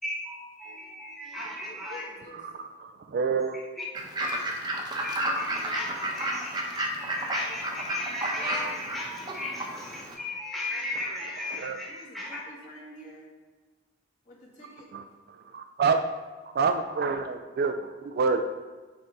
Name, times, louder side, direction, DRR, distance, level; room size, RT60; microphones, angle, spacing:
voice 1, 0.0-2.0 3.5-3.8 4.3-4.4 5.0-12.4, left 2 dB, ahead, -5 dB, 1.4 m, -36 dB
voice 2, 1.6-2.4 11.9-13.3 14.3-14.9 15.8-15.9, equal, 40° left, -6 dB, 2.1 m, -47 dB
voice 3, 2.4-3.6 11.6-11.8 14.9-15.0 15.5-16.0 16.5-18.5, right 5 dB, 50° right, 8 dB, 0.3 m, -27 dB
Fowl / Bird, 3.9-10.1, right 1 dB, 20° right, 0.8 m, -32 dB
9.9 x 3.6 x 4.1 m, 1.3 s
head